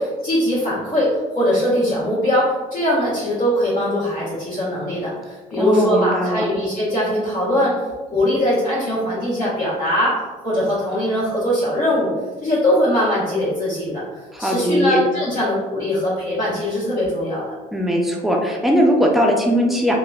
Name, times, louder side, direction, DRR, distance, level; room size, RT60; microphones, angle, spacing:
voice 1, 0.0-7.8 8.1-12.1 12.4-17.4, equal, 55° left, -10 dB, 1.2 m, -21 dB
voice 2, 5.5-6.4 14.3-15.0 17.7-20.0, equal, ahead, -1 dB, 0.5 m, -19 dB
3.0 x 2.1 x 2.4 m, 1.2 s
cardioid pair, 110°, 17 cm